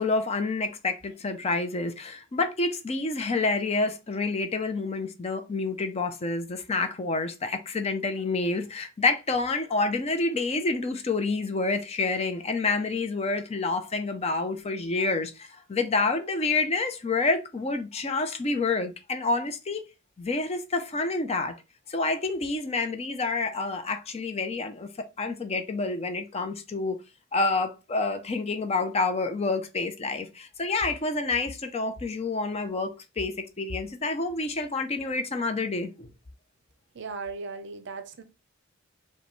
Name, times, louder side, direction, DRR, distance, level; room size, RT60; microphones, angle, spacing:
voice 1, 0.0-19.8 20.2-21.5 21.9-27.0 27.3-36.1, left 3 dB, 30° left, 0.5 m, -28 dB
voice 2, 36.9-38.2, right 4 dB, 60° right, 0.6 m, -37 dB
5.0 x 2.2 x 3.1 m
head